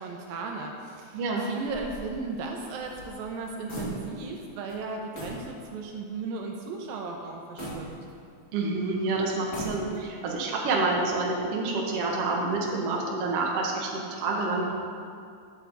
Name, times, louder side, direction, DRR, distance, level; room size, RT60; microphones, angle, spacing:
voice 1, 0.0-8.0, right 4 dB, 80° right, 2 dB, 2.4 m, -36 dB
voice 2, 1.1-1.5 8.5-14.7, right 3 dB, 60° right, -2 dB, 1.7 m, -28 dB
sound 1, 1.6-4.4 4.7-4.8 5.1-5.5 5.9-6.0 7.6-8.6 9.3-10.2, equal, 35° left, 1.6 m, -39 dB
11.5 x 7.3 x 4.1 m, 2.3 s
omnidirectional pair, 4.3 m